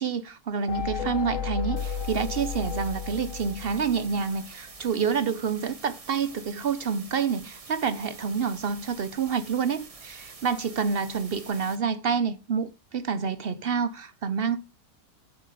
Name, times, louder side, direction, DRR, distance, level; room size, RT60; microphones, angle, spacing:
voice 1, 0.0-14.6, right 6 dB, 60° right, 0.6 m, -28 dB
sound 1, 0.7-4.4, left 7 dB, 55° left, 1.2 m, -33 dB
sound 2, 1.8-11.8, right 4 dB, 25° right, 0.8 m, -47 dB
13.0 x 7.9 x 5.0 m
omnidirectional pair, 1.8 m